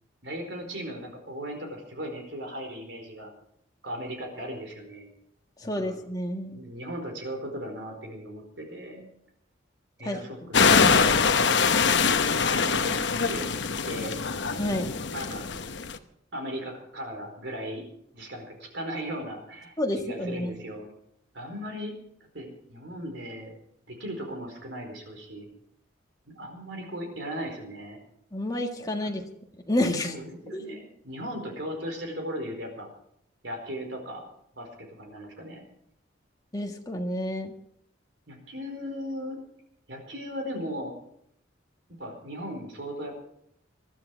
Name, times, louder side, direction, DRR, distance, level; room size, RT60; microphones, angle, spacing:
voice 1, 0.2-3.3 3.8-5.1 5.6-6.0 6.5-9.1 10.0-10.8 11.5-11.6 12.4-13.0 13.3-13.5 13.8-14.2 15.1-15.4 16.3-17.8 18.1-19.7 20.0-20.9 21.3-21.9 22.3-23.5 23.9-25.5 26.2-28.0 29.0-29.2 30.0-32.9 33.4-34.3 34.5-35.6 38.3-39.4 39.9-41.0 42.0-43.2, equal, 60° right, 3 dB, 4.5 m, -37 dB
voice 2, 5.6-6.6 10.0-10.2 10.6-11.2 14.6-14.9 19.8-20.5 28.3-29.2 29.7-30.1 30.5-30.6 36.5-37.5, left 1 dB, 20° left, 2 dB, 1.7 m, -29 dB
sound 1, 10.5-16.0, left 5 dB, 60° left, 1.0 m, -23 dB
21.0 x 12.5 x 4.7 m, 0.72 s
head